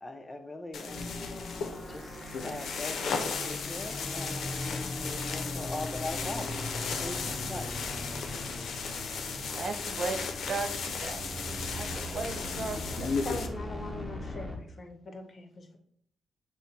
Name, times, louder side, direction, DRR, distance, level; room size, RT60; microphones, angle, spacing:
voice 1, 0.0-1.2 1.6-6.6 7.0-7.9, left 2 dB, 20° left, 0.6 m, -41 dB
sound 1, 0.7-13.5, left 5 dB, 70° left, 0.6 m, -36 dB
sound 2, 0.9-14.6, left 1 dB, ahead, 1.2 m, -39 dB
voice 2, 9.3-11.2 11.7-13.2, right 4 dB, 55° right, 0.5 m, -36 dB
voice 3, 13.2-15.8, left 2 dB, 45° left, 1.0 m, -42 dB
6.1 x 2.1 x 4.1 m
cardioid pair, 80°, 0 cm